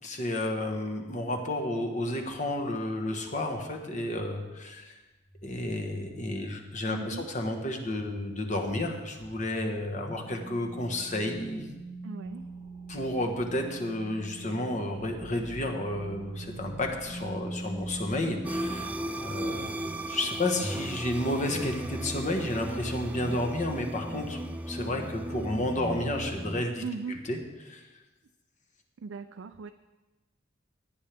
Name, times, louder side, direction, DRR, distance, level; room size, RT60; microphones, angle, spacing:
voice 1, 0.0-5.0 5.4-11.7 12.9-19.8 20.1-24.4 24.7-26.8 27.3-27.9, left 1 dB, 40° left, 3 dB, 1.4 m, -31 dB
sound 1, 5.3-8.7 9.2-18.8, right 2 dB, 20° left, 3.5 m, -43 dB
voice 2, 6.9-7.3 12.0-12.4 26.8-27.2 29.0-29.7, right 5 dB, 80° right, 8 dB, 0.4 m, -38 dB
sound 2, 12.2-13.7 15.0-19.2 21.0-21.9 22.2-23.4, right 1 dB, 35° right, 1.0 m, -49 dB
sound 3, 18.4-26.6, right 1 dB, 5° right, 0.4 m, -36 dB
17.0 x 10.0 x 3.5 m, 1.1 s
head